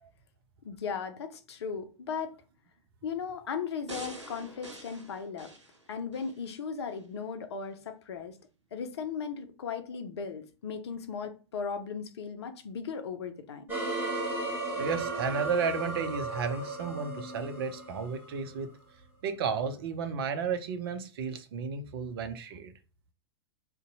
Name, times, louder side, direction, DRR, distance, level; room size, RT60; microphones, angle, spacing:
voice 1, 0.6-2.3 3.0-5.5 5.9-8.4 8.7-13.7, left 6 dB, 65° left, 0.6 m, -37 dB
sound 1, 3.9-6.4 6.9-7.0, right 1 dB, 90° right, 0.8 m, -45 dB
sound 2, 13.7-18.7, right 2 dB, 15° right, 1.1 m, -35 dB
voice 2, 14.8-18.7 19.2-22.7, right 5 dB, 55° right, 0.6 m, -33 dB
2.6 x 2.2 x 4.0 m
figure-of-eight pair, 95°, 15 cm